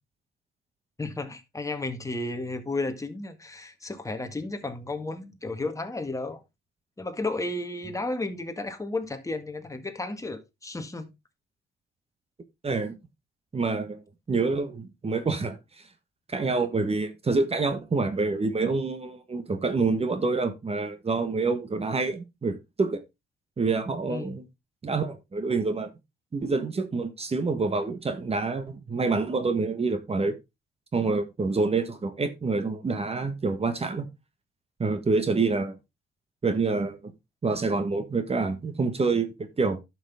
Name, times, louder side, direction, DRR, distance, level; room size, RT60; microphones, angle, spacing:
voice 1, 1.0-6.4 7.0-11.1 24.1-24.4, left 2 dB, 15° left, 1.7 m, -33 dB
voice 2, 12.6-13.0 13.5-14.0 14.3-15.6 16.3-23.0 23.6-24.4 24.8-25.9 26.3-30.4 30.9-34.1 34.8-35.8 36.4-37.1 37.4-39.8, right 3 dB, 30° right, 1.4 m, -27 dB
11.0 x 6.1 x 3.5 m
cardioid pair, 90°, 20 cm